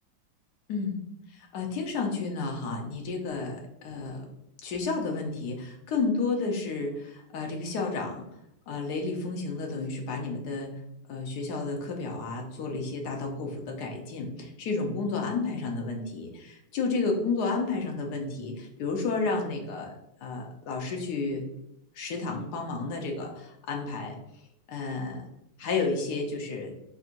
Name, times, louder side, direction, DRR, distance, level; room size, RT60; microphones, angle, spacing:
voice 1, 0.7-1.0 1.3-4.3 4.6-8.2 8.7-10.8 11.1-19.9 20.2-21.4 21.9-24.1 24.7-25.2 25.6-26.7, left 4 dB, 65° left, 2 dB, 1.0 m, -31 dB
4.3 x 3.5 x 2.5 m, 0.81 s
omnidirectional pair, 2.3 m